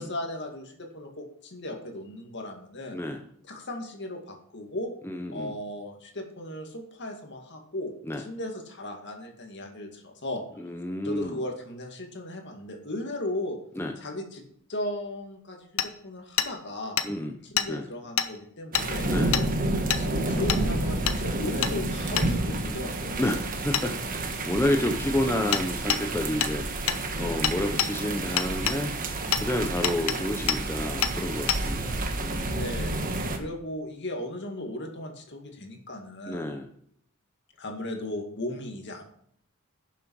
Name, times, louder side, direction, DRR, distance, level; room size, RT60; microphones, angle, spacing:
voice 1, 0.0-3.0 3.5-4.9 5.3-10.4 11.0-13.6 14.0-14.4 14.7-17.0 17.5-19.1 20.0-23.2 32.5-33.0 33.4-36.5 37.6-39.0, left 1 dB, 55° left, 3 dB, 2.2 m, -36 dB
voice 2, 2.9-3.2 5.0-5.5 8.0-8.2 10.6-11.4 13.7-14.0 17.0-17.4 17.7-17.9 19.0-19.3 23.2-26.7 27.1-28.9 29.4-32.6 36.3-36.7, left 1 dB, 10° left, 4 dB, 0.7 m, -30 dB
Hammer, 15.8-15.9 16.4-16.5 17.0-17.1 17.6-17.7 18.2-18.3 18.7-18.9 19.3-19.5 19.9-20.0 20.5-20.6 21.1-21.2 21.6-21.7 22.2-22.3 23.7-23.9 25.5-25.6 25.9-26.0 26.4-26.5 26.9-27.0 27.4-27.9 28.4-28.8 29.3-29.4 29.8-30.2 30.5-30.6 31.0-31.1 31.5-31.6, left 9 dB, 70° left, 0.9 m, -26 dB
sound 1, 18.7-33.4, right 2 dB, 40° right, 1.4 m, -30 dB
11.5 x 7.3 x 4.7 m, 0.67 s
head